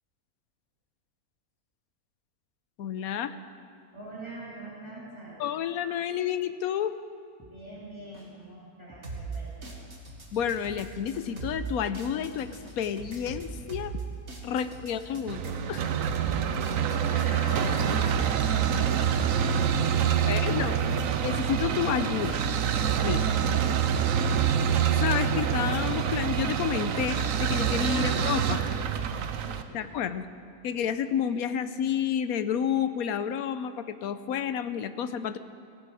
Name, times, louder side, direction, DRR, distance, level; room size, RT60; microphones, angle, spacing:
voice 1, 2.8-3.4 5.4-6.9 10.3-12.5 12.8-13.9 14.4-15.8 20.3-20.8 21.2-22.4 23.0-23.2 25.0-28.7 29.7-30.3 30.6-35.4, left 8 dB, 85° left, 12 dB, 1.2 m, -30 dB
voice 2, 3.9-5.4 7.4-9.7 14.6-15.1 16.9-18.7 19.0-20.3 23.0-23.5 29.7-29.8, right 1 dB, 20° right, -8 dB, 3.7 m, -43 dB
sound 1, 7.4-7.5 8.1-8.3 8.9-9.0 9.6-9.8 10.4-10.5 11.1-11.3 11.9-12.0 12.6-12.8, equal, 15° left, 2.3 m, -52 dB
sound 2, 9.0-18.3, right 4 dB, 50° right, 2.1 m, -40 dB
sound 3, 15.3-29.6, right 8 dB, 70° right, 1.1 m, -26 dB
17.0 x 16.0 x 4.9 m, 2.4 s
omnidirectional pair, 1.5 m